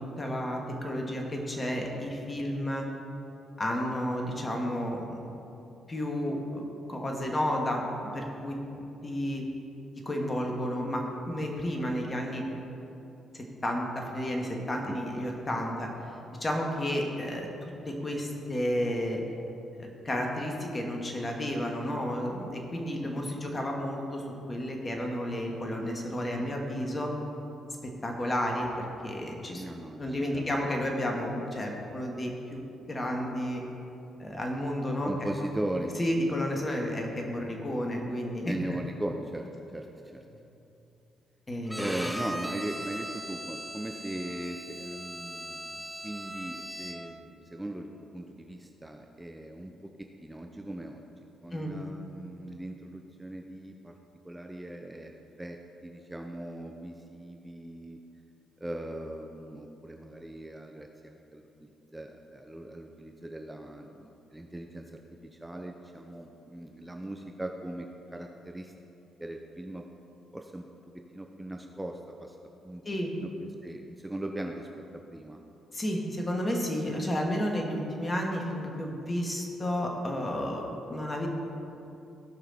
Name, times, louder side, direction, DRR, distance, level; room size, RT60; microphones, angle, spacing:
voice 1, 0.0-2.8 3.6-5.2 5.9-6.6 6.9-7.8 8.1-8.6 9.0-9.4 10.1-12.4 13.3-15.9 16.4-19.2 19.8-24.2 24.5-27.1 28.0-29.6 30.0-32.6 32.9-33.6 34.2-35.1 35.4-35.5 36.0-38.8 41.5-41.9 51.5-51.7 72.9-73.1 75.7-81.3, equal, 30° left, 0 dB, 2.2 m, -32 dB
voice 2, 14.6-15.0 29.5-30.7 35.0-35.9 38.4-40.2 41.7-54.0 54.2-55.1 55.4-58.0 58.6-61.5 61.9-65.0 65.3-68.7 69.2-69.9 70.3-70.7 70.9-72.4 72.6-72.8 73.2-74.7 75.1-75.4, right 1 dB, 15° right, 3 dB, 0.8 m, -39 dB
Bowed string instrument, 41.7-47.3, equal, 5° left, 1.2 m, -39 dB
17.0 x 6.0 x 4.4 m, 2.8 s
hypercardioid pair, 40°, 0 cm